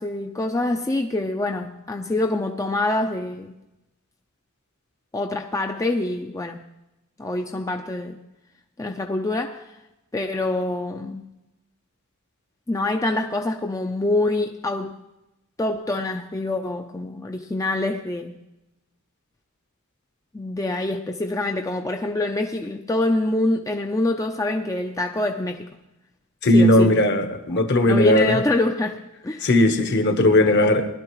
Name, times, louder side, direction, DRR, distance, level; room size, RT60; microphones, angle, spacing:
voice 1, 0.0-3.5 5.1-6.6 7.2-8.2 8.8-9.7 10.1-11.2 12.7-15.0 15.6-18.4 20.3-25.7 26.5-26.9 27.5-29.5, left 2 dB, 15° left, 0.5 m, -25 dB
voice 2, 26.4-28.4 29.4-30.9, left 1 dB, 55° left, 1.1 m, -17 dB
19.5 x 11.5 x 3.1 m
head